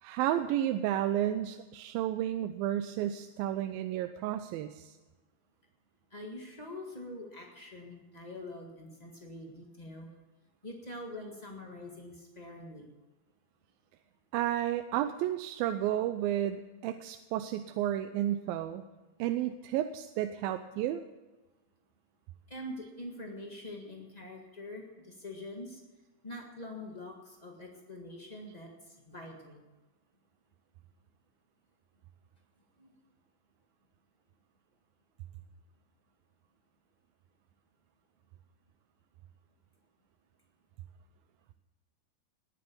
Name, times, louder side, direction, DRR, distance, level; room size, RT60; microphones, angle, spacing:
voice 1, 0.0-4.9 14.3-18.8 19.2-21.0, right 12 dB, 90° right, 9 dB, 2.5 m, -32 dB
voice 2, 6.1-10.1 10.6-12.8 22.5-25.8 26.2-29.6 32.8-32.9, left 1 dB, 50° left, 0 dB, 0.4 m, -44 dB
19.5 x 9.7 x 7.1 m, 1.2 s
omnidirectional pair, 4.1 m